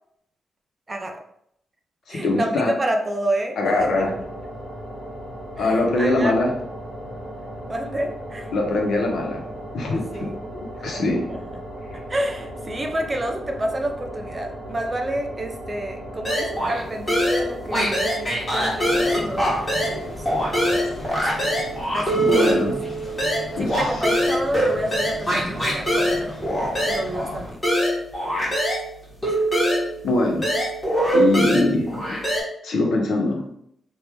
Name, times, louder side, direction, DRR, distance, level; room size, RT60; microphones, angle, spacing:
voice 1, 0.9-1.2 2.1-3.9 5.6-6.5 7.7-8.5 9.9-10.4 10.9-11.4 12.1-20.1 21.1-21.6 21.9-22.6 23.6-26.4 26.9-27.6 29.2-29.5, right 1 dB, 20° right, 3 dB, 0.4 m, -29 dB
voice 2, 2.1-2.7 3.6-4.1 5.6-6.5 8.5-9.4 9.7-11.2 22.1-22.8 23.6-23.9 30.0-30.5 31.1-31.8 32.6-33.4, left 2 dB, 65° left, 0 dB, 1.0 m, -22 dB
sound 1, 3.7-21.1, right 1 dB, 55° right, 1.3 m, -36 dB
sound 2, 16.2-16.8 17.1-20.0 20.2-28.8 29.2-32.4, equal, 15° left, 1.5 m, -23 dB
sound 3, 18.9-27.5, equal, 35° left, 1.0 m, -37 dB
3.4 x 2.6 x 4.4 m, 0.72 s
wide cardioid pair, 155°, 0 cm